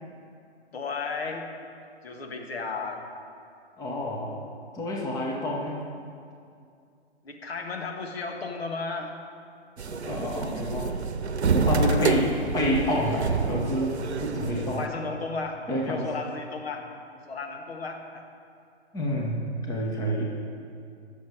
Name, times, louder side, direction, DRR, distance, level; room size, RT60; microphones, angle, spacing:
voice 1, 0.7-1.5 2.0-3.1 7.2-9.2 11.8-12.2 14.7-16.9 17.3-18.3 20.0-20.2, left 4 dB, 65° left, 3 dB, 1.7 m, -34 dB
voice 2, 3.8-4.4 4.7-5.8 9.8-11.0 11.4-14.8 15.7-16.1 18.9-20.2, equal, 10° left, -2 dB, 1.3 m, -28 dB
sound 1, 9.8-14.9, right 5 dB, 70° right, 0.9 m, -28 dB
20.5 x 7.2 x 4.8 m, 2.4 s
figure-of-eight pair, 130°, 34 cm